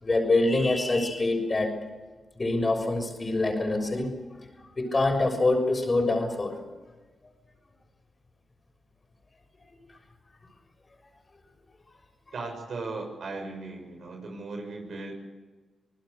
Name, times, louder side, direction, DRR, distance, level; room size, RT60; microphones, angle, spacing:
voice 1, 0.0-1.8 2.4-4.2 4.8-6.6, left 2 dB, 35° left, 5 dB, 6.5 m, -25 dB
voice 2, 12.3-15.1, right 3 dB, 65° right, 3 dB, 6.8 m, -37 dB
26.5 x 19.5 x 6.8 m, 1.3 s
supercardioid pair, 45°, 0 cm